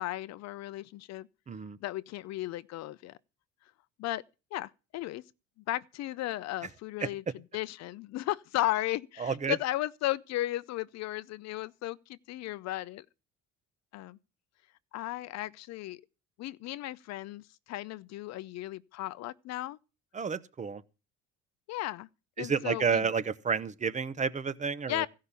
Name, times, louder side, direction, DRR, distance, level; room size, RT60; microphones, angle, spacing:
voice 1, 0.0-1.3 1.8-3.2 4.0-4.2 4.5-5.2 5.7-7.2 7.5-13.1 13.9-14.2 14.9-16.0 16.4-19.8 21.7-22.1 22.4-23.1 24.9-25.1, left 16 dB, 60° left, 0.6 m, -35 dB
voice 2, 1.5-1.8 7.0-7.1 9.2-9.5 20.1-20.8 22.4-25.1, right 6 dB, 25° right, 0.8 m, -30 dB
15.0 x 5.7 x 8.2 m
cardioid pair, 125°, 30 cm